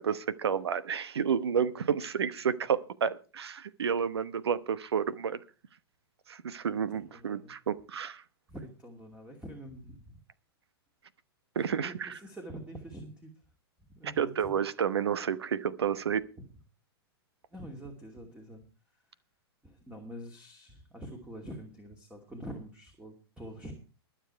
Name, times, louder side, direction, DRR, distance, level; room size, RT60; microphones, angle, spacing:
voice 1, 0.0-5.4 6.3-8.2 11.5-12.2 14.0-16.3, right 7 dB, 80° right, 16 dB, 1.0 m, -30 dB
voice 2, 6.9-7.5 8.5-10.2 11.7-13.3 13.9-14.6 17.5-18.6 19.6-23.7, right 1 dB, 10° right, 3 dB, 2.6 m, -45 dB
22.0 x 7.4 x 4.5 m, 0.34 s
hypercardioid pair, 110°, 13 cm